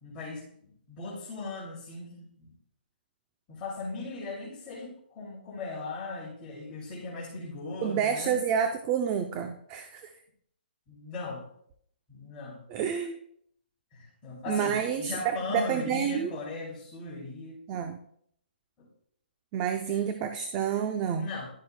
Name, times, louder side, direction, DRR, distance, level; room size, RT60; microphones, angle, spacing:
voice 1, 0.0-2.5 3.5-8.4 10.9-11.4 12.1-12.6 13.9-17.6 18.8-18.9 19.9-20.0 21.1-21.5, left 3 dB, 20° left, -7 dB, 2.6 m, -38 dB
voice 2, 7.8-10.1 12.7-13.2 14.5-16.3 17.7-18.0 19.5-21.3, right 8 dB, 20° right, 7 dB, 0.5 m, -29 dB
11.5 x 7.6 x 2.2 m, 0.67 s
hypercardioid pair, 160°, 6 cm